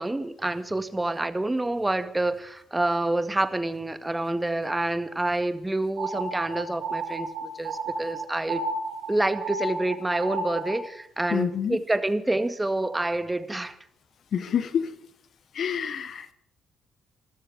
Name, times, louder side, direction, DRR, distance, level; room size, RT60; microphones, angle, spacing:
voice 1, 0.0-8.6 9.1-13.8, right 2 dB, 15° right, 10 dB, 1.8 m, -27 dB
sound 1, 6.0-10.9, right 3 dB, 60° right, 2.5 m, -32 dB
voice 2, 11.3-11.8 14.3-15.0 15.5-16.3, left 8 dB, 55° left, 14 dB, 1.2 m, -28 dB
25.0 x 14.0 x 3.6 m, 0.68 s
figure-of-eight pair, 40°, 0 cm